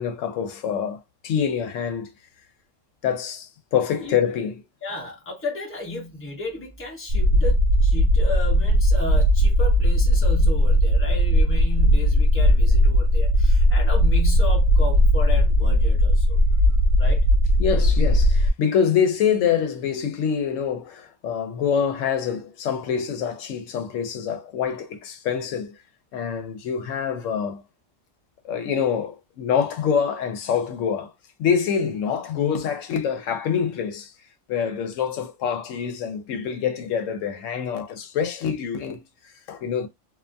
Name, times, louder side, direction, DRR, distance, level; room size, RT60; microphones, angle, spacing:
voice 1, 0.0-2.1 3.0-4.6 17.6-25.7 26.1-27.6 28.4-31.1 31.4-34.1 34.5-39.9, left 7 dB, 85° left, 0.9 m, -25 dB
voice 2, 4.8-16.4 17.0-17.3, left 1 dB, 10° left, 0.7 m, -34 dB
sound 1, 7.1-18.5, equal, 65° right, 0.7 m, -18 dB
2.4 x 2.2 x 2.5 m
omnidirectional pair, 1.3 m